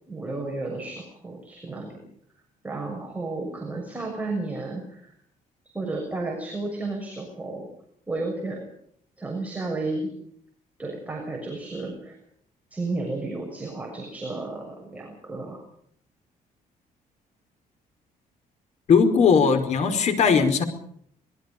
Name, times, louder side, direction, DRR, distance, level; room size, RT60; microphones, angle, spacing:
voice 1, 0.1-2.0 2.6-5.1 5.7-7.7 8.1-8.7 9.2-10.1 10.8-12.2 12.7-15.6, right 2 dB, 10° right, 0 dB, 6.5 m, -32 dB
voice 2, 18.9-20.6, left 6 dB, 50° left, 7 dB, 5.0 m, -19 dB
26.0 x 22.5 x 5.3 m, 0.65 s
cardioid pair, 170°, 15 cm